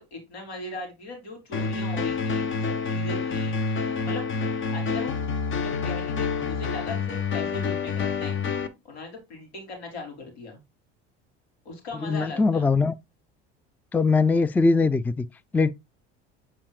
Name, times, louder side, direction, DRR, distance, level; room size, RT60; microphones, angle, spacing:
voice 1, 0.0-4.2 4.7-5.2 5.6-8.4 8.8-10.6 11.7-12.7, left 2 dB, 90° left, 3.6 m, -39 dB
sound 1, 1.5-8.7, left 5 dB, 40° left, 1.3 m, -28 dB
voice 2, 12.0-12.9 13.9-15.3 15.5-15.7, left 4 dB, 5° left, 0.4 m, -21 dB
8.5 x 4.8 x 2.4 m
hypercardioid pair, 75°, 31 cm